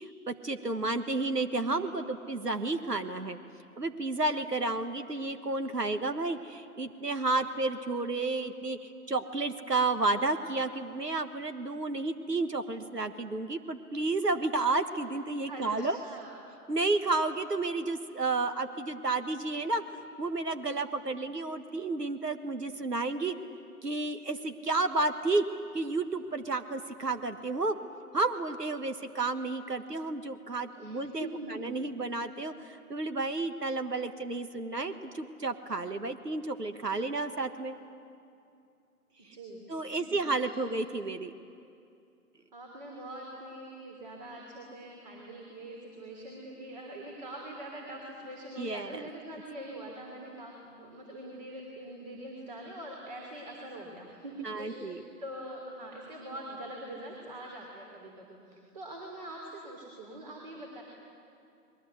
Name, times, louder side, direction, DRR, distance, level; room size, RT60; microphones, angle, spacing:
voice 1, 0.0-3.4 3.8-16.0 16.7-23.4 23.8-25.4 25.7-27.8 28.1-37.8 39.2-39.3 39.7-41.3 48.6-49.1 54.4-55.0, right 3 dB, 85° right, 8 dB, 1.6 m, -31 dB
voice 2, 15.5-16.4 30.7-31.8 39.2-40.1 40.4-40.6 42.5-54.9 55.2-60.8, right 1 dB, 25° right, 0 dB, 3.2 m, -43 dB
30.0 x 21.5 x 8.1 m, 2.5 s
figure-of-eight pair, 155°, 47 cm